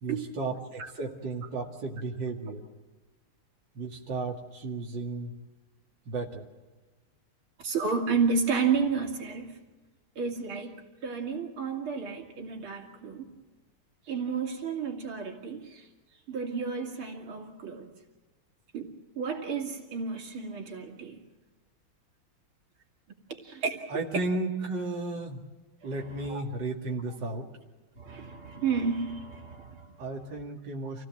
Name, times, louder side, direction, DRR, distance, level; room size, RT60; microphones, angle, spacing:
voice 1, 0.0-2.7 3.7-5.3 6.1-6.5 23.9-25.4 25.8-27.5 30.0-31.0, right 3 dB, 60° right, 0 dB, 2.8 m, -34 dB
voice 2, 7.6-9.5 10.2-10.7 11.0-13.3 14.1-15.9 16.3-17.9 18.7-18.9 19.2-21.2 23.3-23.8 25.8-25.9 26.2-26.4 28.0-30.0, right 5 dB, 80° right, 2 dB, 3.4 m, -31 dB
28.0 x 17.0 x 7.7 m, 1.3 s
omnidirectional pair, 2.3 m